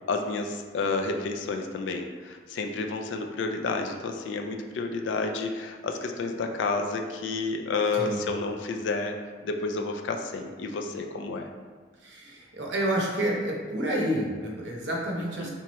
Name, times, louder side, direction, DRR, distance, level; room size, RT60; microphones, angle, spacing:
voice 1, 0.1-9.1 9.4-11.5 15.4-15.5, left 3 dB, 80° left, 4 dB, 0.4 m, -30 dB
voice 2, 12.0-15.5, right 1 dB, 70° right, -2 dB, 0.7 m, -29 dB
3.4 x 2.9 x 3.0 m, 1.5 s
head